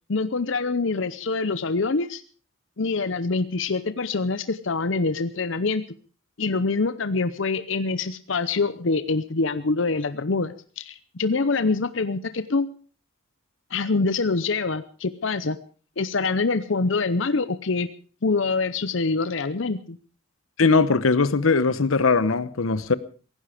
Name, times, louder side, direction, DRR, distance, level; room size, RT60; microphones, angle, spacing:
voice 1, 0.1-2.2 2.8-5.8 6.4-12.7 13.7-15.6 16.0-17.9 18.2-20.0, left 3 dB, 65° left, 0.8 m, -25 dB
voice 2, 20.6-22.9, left 4 dB, 90° left, 0.9 m, -20 dB
17.0 x 15.0 x 5.0 m
head